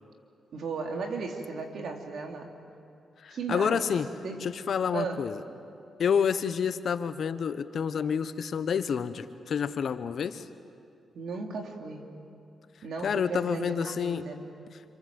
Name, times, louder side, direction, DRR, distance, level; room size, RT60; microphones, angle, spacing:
voice 1, 0.5-2.5 3.3-3.9 4.2-4.5 4.9-5.3 11.1-12.1 12.8-14.4, right 4 dB, 70° right, 2 dB, 3.2 m, -35 dB
voice 2, 3.2-4.1 4.4-5.4 6.0-10.4 13.0-14.2, left 7 dB, 65° left, 11 dB, 1.1 m, -29 dB
27.5 x 26.0 x 7.8 m, 2.6 s
cardioid pair, 70°, 0 cm